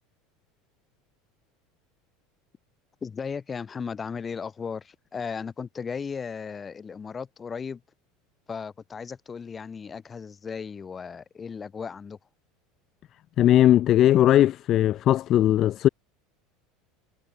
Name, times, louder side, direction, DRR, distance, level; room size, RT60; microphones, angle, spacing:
voice 1, 3.0-7.8 8.5-12.2, left 6 dB, 25° left, 4.8 m, -36 dB
voice 2, 13.4-15.9, left 12 dB, 45° left, 0.4 m, -19 dB
figure-of-eight pair, 75°, 0 cm